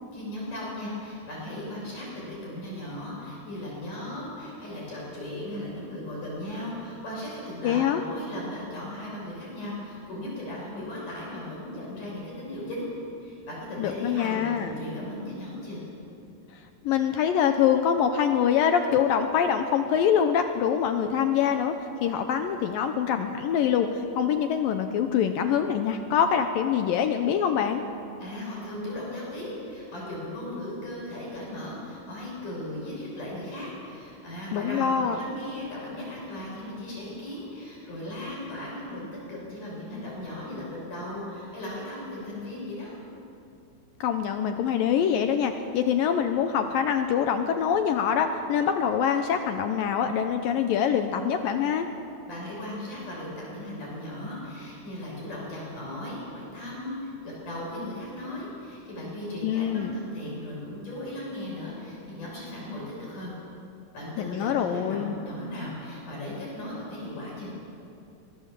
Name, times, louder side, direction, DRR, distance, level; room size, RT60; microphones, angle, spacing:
voice 1, 0.1-12.9 13.2-15.8 28.2-42.9 52.3-63.3 63.9-67.5, left 1 dB, 50° left, -4 dB, 7.7 m, -37 dB
voice 2, 7.6-8.0 13.8-14.8 16.8-27.8 34.5-35.2 44.0-51.9 59.4-59.9 64.2-65.2, left 8 dB, 75° left, 7 dB, 2.2 m, -24 dB
22.5 x 20.5 x 7.5 m, 2.6 s
omnidirectional pair, 4.7 m